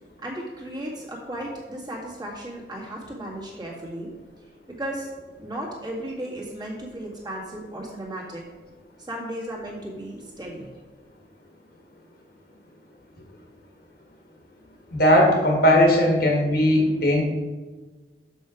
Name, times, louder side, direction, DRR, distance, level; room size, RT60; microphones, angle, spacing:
voice 1, 0.2-4.1 4.7-5.1 5.4-8.4 9.0-10.7, right 1 dB, 25° right, -4 dB, 1.9 m, -35 dB
voice 2, 14.9-17.2, left 1 dB, 60° left, 1 dB, 1.5 m, -18 dB
6.4 x 6.3 x 5.0 m, 1.3 s
head